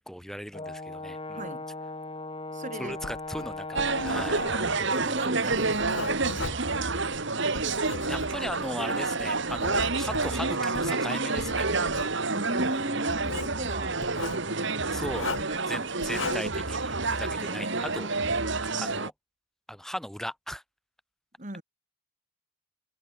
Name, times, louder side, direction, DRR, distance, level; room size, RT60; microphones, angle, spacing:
voice 1, 0.0-1.4 2.8-4.5 8.1-11.7 14.9-15.3 15.7-18.1 18.6-19.1 19.7-20.6, equal, ahead, 3.2 m, -37 dB
Brass instrument, 0.5-4.9, left 2 dB, 25° left, 2.0 m, -38 dB
voice 2, 1.3-1.7 2.5-3.0 4.8-6.7 12.3-14.0 14.3-15.0 15.3-15.9 17.3-18.3 21.4-21.6, right 1 dB, 35° right, 2.9 m, -38 dB
Writing, 2.9-8.7 9.2-11.0 11.4-12.1 13.1-13.6 14.0-14.4 15.1-15.6 16.0-16.6, left 3 dB, 65° left, 3.3 m, -38 dB
sound 1, 3.7-19.1, right 3 dB, 55° right, 2.4 m, -29 dB
head